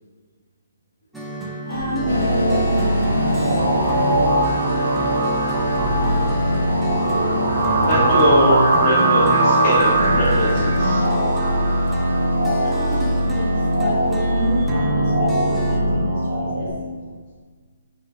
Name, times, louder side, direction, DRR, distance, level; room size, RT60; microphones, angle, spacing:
sound 1, 1.1-15.8, equal, ahead, 0.4 m, -30 dB
voice 1, 1.7-4.8 12.6-16.8, equal, 55° left, -6 dB, 1.5 m, -28 dB
sound 2, 1.7-16.7, right 1 dB, 55° right, 0.6 m, -20 dB
sound 3, 2.1-14.7, equal, 85° left, 0.6 m, -34 dB
voice 2, 7.8-11.1 12.9-13.0, equal, 30° left, -11 dB, 1.1 m, -21 dB
4.6 x 2.2 x 3.3 m, 1.6 s
figure-of-eight pair, 135°, 0 cm